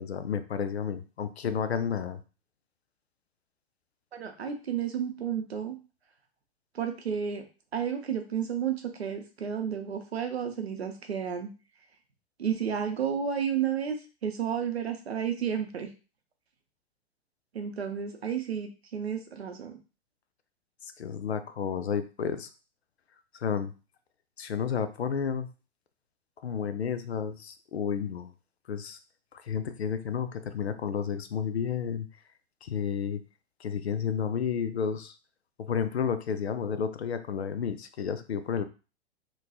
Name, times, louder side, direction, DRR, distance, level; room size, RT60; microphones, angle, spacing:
voice 1, 0.0-2.2 21.0-22.5 23.4-23.7 24.4-25.5 26.4-28.3 28.7-29.0 29.4-32.1 32.6-33.2 33.6-35.1 35.6-38.6, left 7 dB, 80° left, 11 dB, 0.5 m, -31 dB
voice 2, 4.1-5.8 6.7-7.4 7.7-11.5 12.4-14.0 14.2-15.9 17.5-19.8, right 8 dB, 75° right, 5 dB, 0.7 m, -31 dB
2.8 x 2.2 x 2.7 m, 0.33 s
figure-of-eight pair, 100°, 32 cm